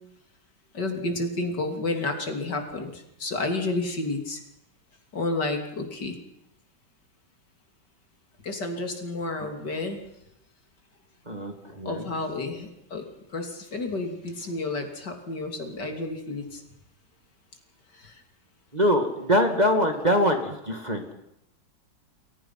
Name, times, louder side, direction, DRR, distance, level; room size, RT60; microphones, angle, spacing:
voice 1, 0.7-4.4 5.1-6.2 8.4-10.0 11.9-13.0 13.3-16.6 17.9-18.1, left 2 dB, 60° left, 4 dB, 3.6 m, -31 dB
voice 2, 11.3-12.1 18.7-21.1, equal, 20° right, 4 dB, 2.4 m, -23 dB
29.5 x 22.0 x 5.9 m, 0.79 s
omnidirectional pair, 2.1 m